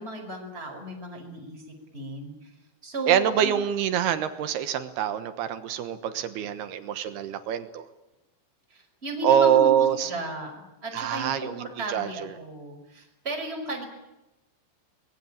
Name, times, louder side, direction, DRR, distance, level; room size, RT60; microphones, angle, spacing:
voice 1, 0.0-2.5 2.8-3.6 8.7-13.8, right 1 dB, 10° right, 1 dB, 5.2 m, -35 dB
voice 2, 3.1-7.8 9.2-10.1 10.9-12.1, right 9 dB, 70° right, 10 dB, 2.7 m, -24 dB
24.5 x 21.5 x 8.9 m, 0.97 s
omnidirectional pair, 5.9 m